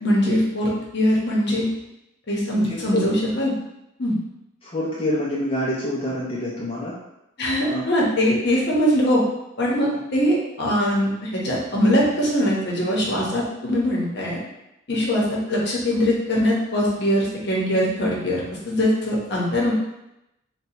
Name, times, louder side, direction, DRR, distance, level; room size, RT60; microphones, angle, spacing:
voice 1, 0.0-1.7 2.3-3.5 4.0-4.2 7.4-9.2 9.6-14.4 14.9-19.7, equal, 55° left, -4 dB, 0.8 m, -22 dB
voice 2, 2.7-3.0 4.6-6.9 7.7-7.8 9.9-10.0 14.9-15.0, left 1 dB, 25° left, -6 dB, 0.4 m, -26 dB
2.7 x 2.2 x 4.1 m, 0.87 s
head